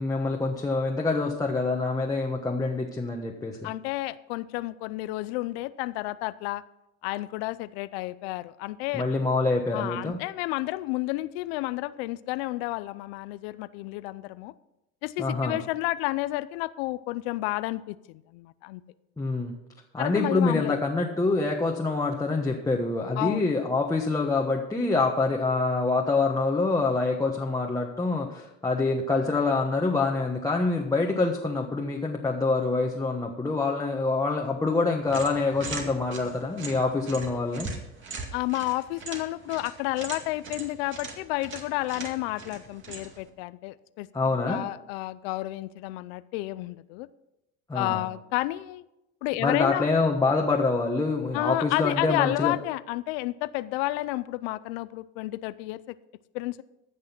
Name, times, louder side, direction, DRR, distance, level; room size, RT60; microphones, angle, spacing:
voice 1, 0.0-3.7 8.9-10.2 15.2-15.6 19.2-19.5 19.9-37.7 44.1-44.6 47.7-48.0 49.4-52.5, left 3 dB, 10° left, 0 dB, 1.3 m, -26 dB
voice 2, 3.6-6.6 7.0-9.0 9.7-14.5 15.0-18.8 20.0-20.8 23.2-23.5 38.3-44.1 44.4-47.1 47.7-48.8 49.2-49.9 51.3-56.0 56.3-56.6, left 18 dB, 85° left, 15 dB, 0.6 m, -31 dB
sound 1, 35.1-43.3, right 4 dB, 40° right, 2.2 m, -40 dB
15.0 x 6.3 x 5.9 m, 0.90 s
supercardioid pair, 105°, 30 cm